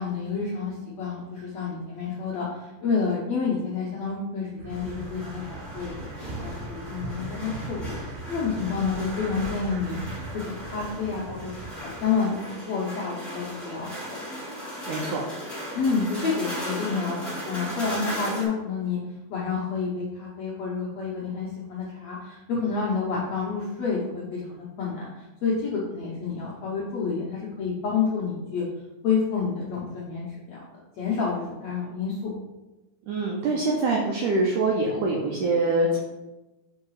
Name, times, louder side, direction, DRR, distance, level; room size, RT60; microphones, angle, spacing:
voice 1, 0.0-14.2 15.7-19.0 19.3-28.6 29.0-30.6 31.0-32.3, left 5 dB, 75° left, -6 dB, 1.5 m, -29 dB
sound 1, 4.6-12.1, right 2 dB, 70° right, 2.0 m, -39 dB
sound 2, 4.7-18.5, equal, ahead, 0.4 m, -37 dB
voice 2, 14.9-15.2 33.1-36.0, right 2 dB, 85° right, -1 dB, 1.7 m, -24 dB
5.2 x 4.7 x 4.7 m, 1.1 s
omnidirectional pair, 4.4 m